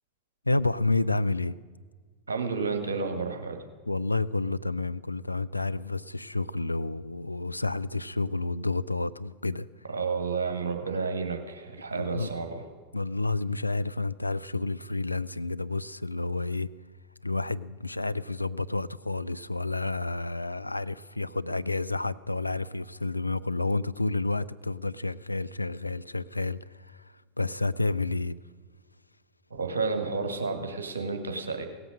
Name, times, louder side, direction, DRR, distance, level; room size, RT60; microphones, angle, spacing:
voice 1, 0.5-1.6 3.9-9.7 11.9-12.3 12.9-16.7 17.2-26.6 26.9-27.0 27.4-28.3, left 3 dB, 85° left, 16 dB, 0.3 m, -30 dB
voice 2, 2.3-3.6 9.9-12.6 29.5-31.7, right 4 dB, 70° right, 4 dB, 1.6 m, -31 dB
17.0 x 7.9 x 6.5 m, 1.5 s
figure-of-eight pair, 90°, 0 cm